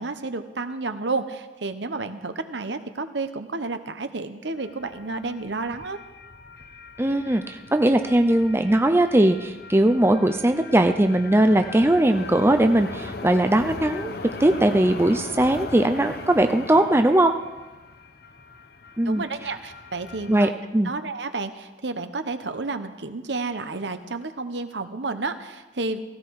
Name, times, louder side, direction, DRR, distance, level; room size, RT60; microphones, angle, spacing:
voice 1, 0.0-6.0 19.0-20.5 20.8-26.0, right 3 dB, 70° right, 9 dB, 1.0 m, -31 dB
sound 1, 4.6-20.4, left 3 dB, 55° left, 1.0 m, -39 dB
voice 2, 7.0-17.3 19.0-19.2 20.3-20.9, right 1 dB, 15° right, 6 dB, 0.5 m, -20 dB
16.5 x 16.5 x 4.8 m, 1.2 s
head